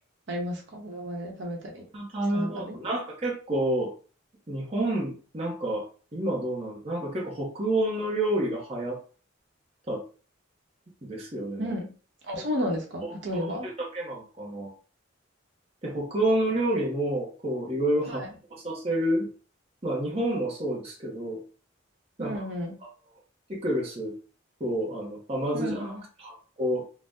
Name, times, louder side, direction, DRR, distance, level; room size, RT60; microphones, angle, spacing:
voice 1, 0.3-1.8 2.3-2.8 11.6-11.9 12.3-13.7 18.1-18.3 22.2-22.8 25.5-26.0, equal, 60° right, 0 dB, 0.8 m, -32 dB
voice 2, 1.9-3.9 4.5-9.0 9.9-10.0 11.0-11.7 12.4-12.5 13.0-14.7 15.8-18.2 18.5-19.3 19.8-21.4 22.2-22.5 22.8-22.9 23.5-24.1 24.6-26.8, right 1 dB, 30° right, -3 dB, 0.8 m, -29 dB
2.7 x 2.1 x 3.4 m, 0.37 s
head